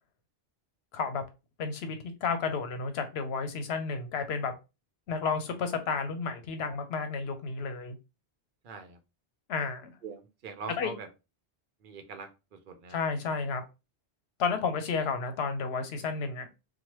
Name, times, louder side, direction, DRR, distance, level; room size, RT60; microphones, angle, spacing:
voice 1, 0.9-1.2 1.6-4.6 5.1-8.0 9.5-9.9 10.8-10.9 12.9-13.6 14.4-16.5, left 5 dB, 75° left, 0.8 m, -32 dB
voice 2, 8.6-9.0 10.0-11.1 11.8-13.0, right 5 dB, 60° right, 0.7 m, -43 dB
3.0 x 2.2 x 2.9 m
omnidirectional pair, 1.1 m